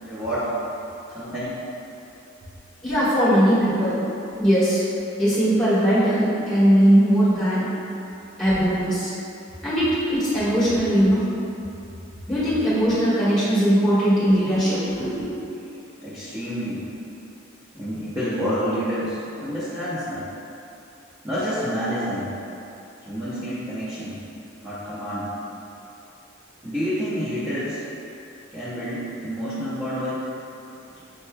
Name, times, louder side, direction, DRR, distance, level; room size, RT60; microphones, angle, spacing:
voice 1, 0.0-0.5 1.1-1.6 16.0-16.9 17.7-20.2 21.2-22.3 23.1-24.2 24.6-25.3 26.6-27.8 28.5-30.3, equal, 15° right, -14 dB, 0.7 m, -28 dB
voice 2, 2.8-4.0 4.4-4.8 5.2-7.7 8.4-9.1 9.6-11.2 12.3-15.3, equal, ahead, -12 dB, 1.4 m, -19 dB
6.6 x 3.0 x 2.2 m, 2.8 s
head